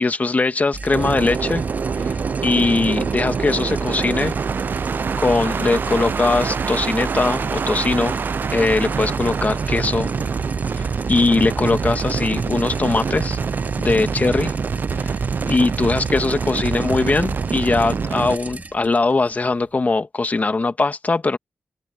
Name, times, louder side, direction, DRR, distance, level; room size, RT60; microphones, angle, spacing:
voice 1, 0.0-1.7 2.0-2.1 2.4-4.3 5.2-8.2 8.5-10.1 10.7-13.4 13.8-14.5 15.0-15.2 15.4-21.4, left 3 dB, 45° left, 1.7 m, -20 dB
sound 1, 0.7-20.0, right 3 dB, 45° right, 3.5 m, -33 dB
sound 2, 0.9-18.4, right 6 dB, 65° right, 0.4 m, -25 dB
open air
cardioid pair, 55°, 4 cm